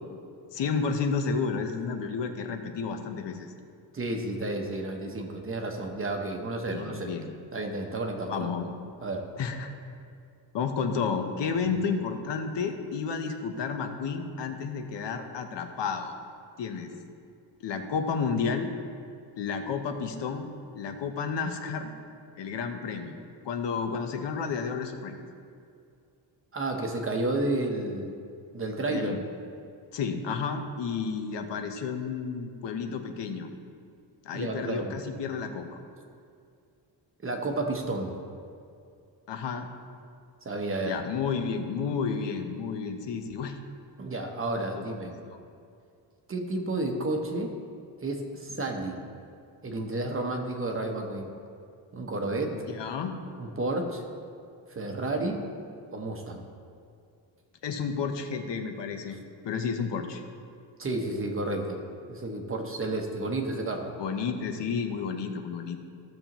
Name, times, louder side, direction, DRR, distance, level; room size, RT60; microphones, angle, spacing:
voice 1, 0.5-3.5 6.7-7.3 8.3-8.7 9.4-9.7 10.5-16.1 16.6-16.9 17.6-18.7 19.4-20.5 20.7-21.9 22.4-23.1 23.4-25.2 28.9-29.2 29.9-33.5 34.2-35.8 39.3-39.7 40.8-43.6 44.8-44.9 45.2-45.4 52.5-53.1 57.6-59.2 59.4-60.2 64.0-65.8, left 5 dB, 60° left, 5 dB, 0.9 m, -31 dB
voice 2, 3.9-7.1 7.5-8.5 9.0-9.3 26.5-28.1 28.5-29.1 34.3-35.0 37.2-38.1 40.4-41.0 44.0-45.1 46.3-47.5 48.0-49.0 49.6-51.3 51.9-52.6 53.4-54.0 54.7-55.4 55.9-56.4 59.1-59.2 60.8-61.8 62.1-63.9, right 2 dB, 25° right, 3 dB, 0.9 m, -31 dB
15.0 x 7.0 x 3.0 m, 2.4 s
cardioid pair, 155°, 47 cm